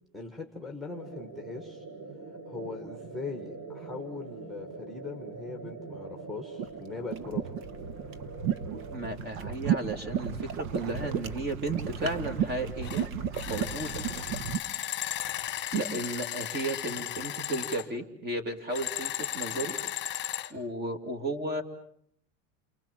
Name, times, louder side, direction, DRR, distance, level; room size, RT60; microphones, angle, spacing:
voice 1, 0.1-1.9 2.5-7.5, left 4 dB, ahead, 4 dB, 2.0 m, -40 dB
sound 1, 0.9-9.2, right 3 dB, 45° right, 4.6 m, -43 dB
sound 2, 6.6-14.6, right 8 dB, 80° right, 1.6 m, -33 dB
voice 2, 8.9-13.0 13.5-14.0 15.7-19.8 20.5-21.6, right 2 dB, 25° right, 7 dB, 2.9 m, -34 dB
sound 3, 12.8-13.0 13.3-17.9 18.7-20.5, left 12 dB, 30° left, 1.5 m, -35 dB
29.5 x 24.0 x 7.5 m, 0.68 s
supercardioid pair, 150°, 41 cm